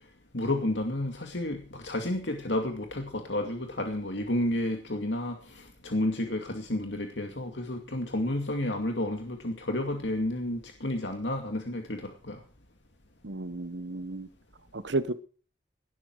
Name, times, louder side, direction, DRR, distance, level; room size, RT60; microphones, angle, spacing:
voice 1, 0.3-12.4, left 1 dB, 80° left, 4 dB, 2.4 m, -31 dB
voice 2, 13.2-14.3 14.7-15.1, right 2 dB, 80° right, 14 dB, 1.2 m, -32 dB
19.0 x 12.0 x 4.8 m, 0.40 s
head